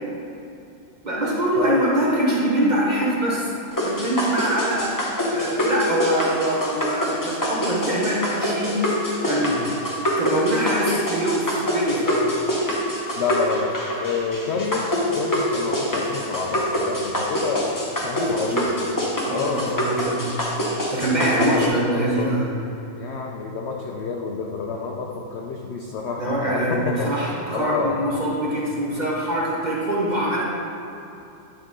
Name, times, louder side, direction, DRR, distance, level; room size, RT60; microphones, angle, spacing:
voice 1, 1.0-8.8 9.2-9.6 10.2-12.3 18.2-18.7 19.2-20.4 20.9-22.5 26.2-30.4, right 1 dB, 40° right, -5 dB, 0.7 m, -24 dB
sound 1, 3.8-21.7, equal, 25° left, 0.4 m, -25 dB
voice 2, 13.2-13.7 14.0-18.7 19.3-19.9 21.0-22.3 23.0-27.1 27.5-28.0, left 5 dB, 80° left, 0 dB, 0.6 m, -28 dB
10.0 x 3.8 x 3.6 m, 2.8 s
omnidirectional pair, 1.8 m